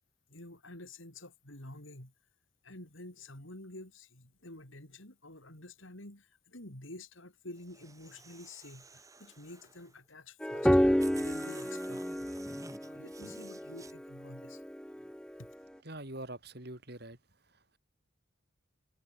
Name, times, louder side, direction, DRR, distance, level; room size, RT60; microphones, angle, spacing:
voice 1, 0.3-2.1 2.6-12.0 12.8-14.6 15.0-15.1 15.4-15.5, left 2 dB, 70° left, 5.6 m, -49 dB
sound 1, 7.6-9.9 10.6-10.7 11.0-13.9, right 3 dB, 15° right, 4.9 m, -51 dB
sound 2, 10.4-15.4, equal, 5° left, 0.6 m, -30 dB
voice 2, 15.8-17.2 17.5-17.8, right 1 dB, 50° right, 4.7 m, -44 dB
head